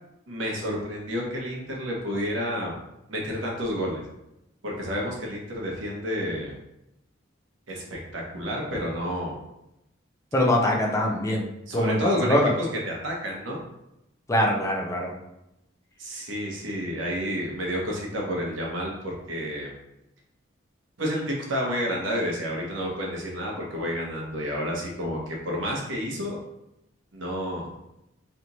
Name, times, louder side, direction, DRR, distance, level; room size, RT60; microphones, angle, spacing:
voice 1, 0.3-2.8 3.1-4.0 4.6-6.5 7.7-9.4 11.7-13.6 16.0-19.7 21.0-26.4 27.1-27.7, equal, 70° right, -2 dB, 1.1 m, -30 dB
voice 2, 10.3-11.5 11.7-12.5 14.3-15.1, left 1 dB, 15° left, -1 dB, 0.6 m, -23 dB
3.3 x 3.0 x 4.0 m, 0.87 s
head